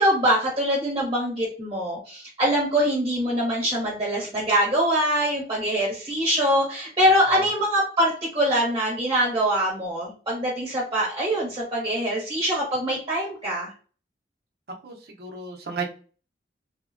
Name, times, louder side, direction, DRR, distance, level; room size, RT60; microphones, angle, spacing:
voice 1, 0.0-13.7, equal, 25° right, -5 dB, 0.8 m, -23 dB
voice 2, 14.8-15.8, right 4 dB, 65° right, 1 dB, 0.6 m, -33 dB
3.2 x 2.1 x 2.5 m, 0.39 s
head